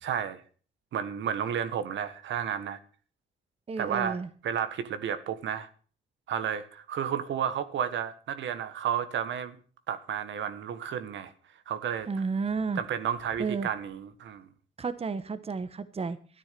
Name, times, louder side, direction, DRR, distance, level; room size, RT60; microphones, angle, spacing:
voice 1, 0.0-0.4 0.9-2.8 3.8-4.2 4.4-5.7 6.3-9.5 9.9-11.3 11.7-12.1 12.7-14.4, right 8 dB, 70° right, 1.5 m, -32 dB
voice 2, 3.7-4.3 12.1-12.8 13.4-13.7 14.8-16.4, right 4 dB, 30° right, 1.2 m, -32 dB
13.0 x 9.9 x 6.8 m
cardioid pair, 90°, 20 cm